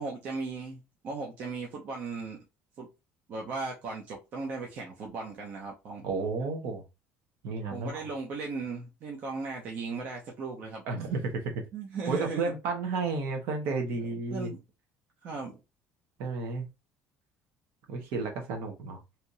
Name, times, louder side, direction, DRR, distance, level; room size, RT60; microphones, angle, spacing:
voice 1, 0.0-2.4 2.8-2.9 3.3-6.0 7.7-10.8 11.7-12.5 13.9-14.6 15.2-15.6, right 4 dB, 40° right, 0.7 m, -37 dB
voice 2, 6.0-6.8 7.4-8.1 10.9-11.6 12.1-14.5 16.2-16.7 17.9-19.0, right 4 dB, 60° right, 1.1 m, -32 dB
3.4 x 2.9 x 2.6 m
cardioid pair, 175°, 4 cm